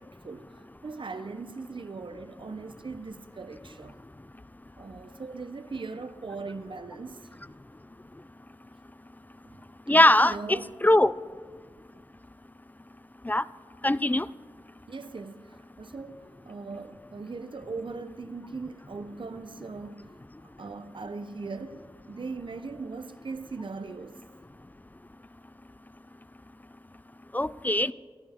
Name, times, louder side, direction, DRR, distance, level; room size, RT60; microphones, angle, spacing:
voice 1, 0.0-4.0 4.8-7.3 9.4-10.7 14.9-24.2, right 4 dB, 55° right, 0.6 m, -40 dB
voice 2, 9.9-11.1 13.2-13.4 13.8-14.3 27.3-27.9, left 1 dB, 15° left, 0.4 m, -21 dB
19.0 x 13.5 x 3.6 m
wide cardioid pair, 50°, 10 cm